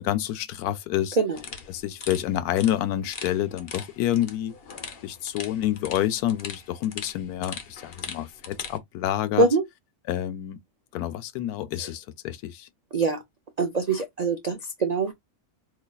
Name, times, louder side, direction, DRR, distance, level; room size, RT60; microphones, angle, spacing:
voice 1, 0.0-1.2 1.7-4.5 5.0-9.5 10.1-10.6 10.9-12.7, left 12 dB, 85° left, 1.1 m, -28 dB
sound 1, 1.3-8.8, left 6 dB, 50° left, 0.8 m, -41 dB
voice 2, 13.6-15.1, right 3 dB, 80° right, 0.3 m, -23 dB
4.1 x 2.8 x 2.2 m
omnidirectional pair, 1.6 m